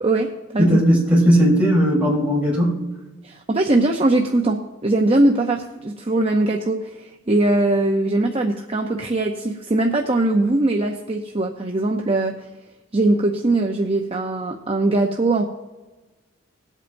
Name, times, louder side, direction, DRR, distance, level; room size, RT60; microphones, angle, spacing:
voice 1, 0.0-0.8 3.2-12.5 12.9-15.4, right 2 dB, 30° right, 2 dB, 0.6 m, -21 dB
voice 2, 0.6-2.8, equal, 5° right, -6 dB, 3.7 m, -17 dB
20.5 x 8.2 x 2.6 m, 1.2 s
head